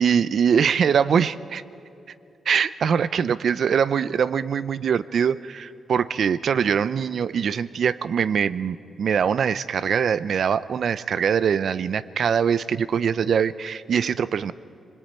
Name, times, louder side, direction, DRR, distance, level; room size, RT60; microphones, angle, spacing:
voice 1, 0.0-1.6 2.5-14.5, right 7 dB, 65° right, 16 dB, 0.6 m, -23 dB
27.0 x 20.0 x 9.0 m, 2.8 s
cardioid pair, 80°, 0 cm